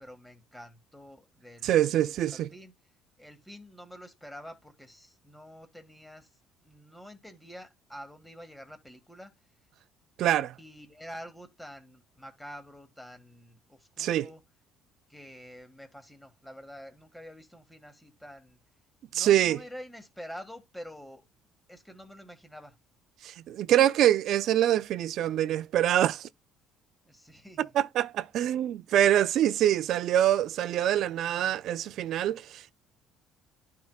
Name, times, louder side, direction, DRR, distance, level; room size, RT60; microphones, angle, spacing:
voice 1, 0.0-2.7 3.2-9.3 10.6-14.4 15.1-18.6 19.1-21.2 21.7-22.7 27.1-27.8, equal, 5° left, 1.8 m, -47 dB
voice 2, 1.6-2.5 10.2-10.6 14.0-14.3 19.1-19.6 23.2-26.3 27.6-32.7, right 12 dB, 65° right, 0.4 m, -25 dB
11.5 x 4.7 x 2.3 m
cardioid pair, 110°, 0 cm